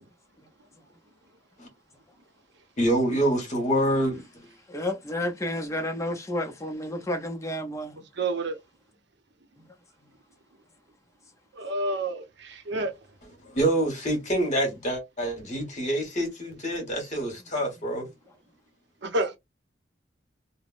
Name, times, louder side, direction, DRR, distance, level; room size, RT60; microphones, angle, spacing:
voice 1, 2.8-4.2 13.4-18.1, right 1 dB, 40° left, 1.4 m, -26 dB
voice 2, 4.7-8.0 9.6-9.7, left 1 dB, 15° left, 0.6 m, -31 dB
voice 3, 8.2-8.6 11.6-12.9 19.0-19.4, right 2 dB, 65° right, 0.7 m, -29 dB
3.3 x 2.1 x 2.5 m
head